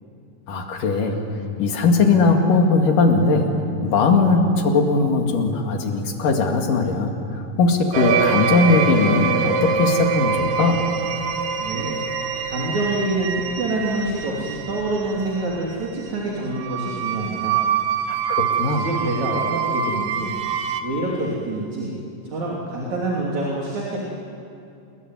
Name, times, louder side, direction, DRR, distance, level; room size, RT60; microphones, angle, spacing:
voice 1, 0.5-1.2 1.6-3.5 3.8-10.8 18.1-18.9, left 3 dB, 85° left, 3 dB, 3.8 m, -19 dB
sound 1, 7.9-20.8, right 7 dB, 90° right, 3.0 m, -25 dB
voice 2, 11.6-12.0 12.5-17.6 18.7-20.3 20.8-21.9 22.2-24.0, right 2 dB, 60° right, -4 dB, 4.4 m, -26 dB
27.5 x 21.5 x 9.5 m, 2.5 s
omnidirectional pair, 3.7 m